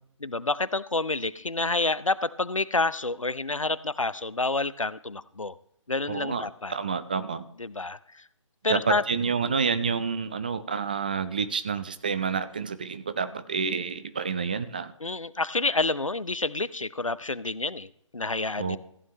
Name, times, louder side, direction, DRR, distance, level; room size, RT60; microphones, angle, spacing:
voice 1, 0.2-5.5 5.9-6.7 7.6-8.2 8.6-9.0 15.0-18.8, left 3 dB, 90° left, 16 dB, 0.6 m, -28 dB
voice 2, 6.1-7.5 8.7-14.9 18.6-18.8, right 5 dB, 15° right, 12 dB, 0.3 m, -29 dB
15.0 x 9.0 x 3.1 m, 0.72 s
figure-of-eight pair, 145°, 16 cm